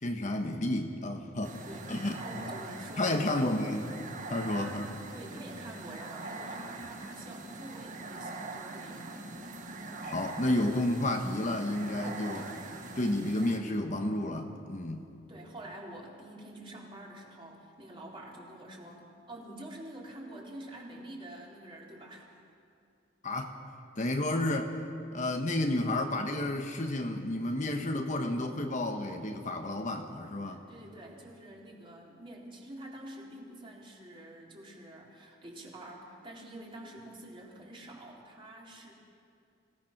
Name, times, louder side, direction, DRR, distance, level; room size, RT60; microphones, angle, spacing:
voice 1, 0.0-2.2 2.5-2.6 3.0-3.9 4.3-5.0 10.0-12.5 13.0-15.1 23.2-23.6 24.0-24.8 25.1-30.6, left 1 dB, 40° left, 4 dB, 1.2 m, -31 dB
voice 2, 1.4-3.4 4.2-4.9 5.1-9.2 15.3-22.3 30.4-38.9, right 1 dB, 30° right, -3 dB, 3.7 m, -47 dB
sound 1, 1.4-13.6, right 3 dB, 45° right, 1.4 m, -43 dB
26.0 x 17.5 x 6.0 m, 2.5 s
head